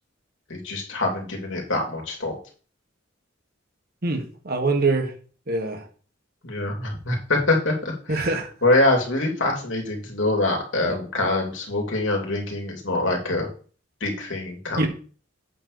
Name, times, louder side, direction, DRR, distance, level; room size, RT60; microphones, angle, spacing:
voice 1, 0.5-2.4 6.4-8.3 8.6-13.5 14.0-14.9, left 2 dB, 70° left, 3.1 m, -24 dB
voice 2, 4.0-5.1 5.5-5.8 8.1-8.5 14.8-14.9, right 3 dB, 55° right, 1.8 m, -24 dB
8.6 x 4.6 x 6.8 m
head